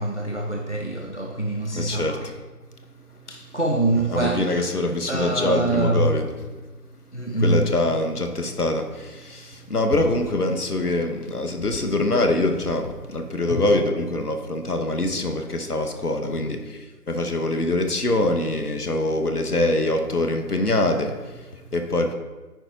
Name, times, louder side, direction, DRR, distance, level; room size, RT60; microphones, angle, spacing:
voice 1, 0.0-2.3 3.3-4.8 5.1-6.2 7.1-7.7, right 2 dB, 50° left, 0.5 m, -24 dB
voice 2, 1.7-2.2 4.1-6.3 7.4-22.1, left 2 dB, 65° left, 1.1 m, -24 dB
9.1 x 4.7 x 3.9 m
figure-of-eight pair, 175°, 49 cm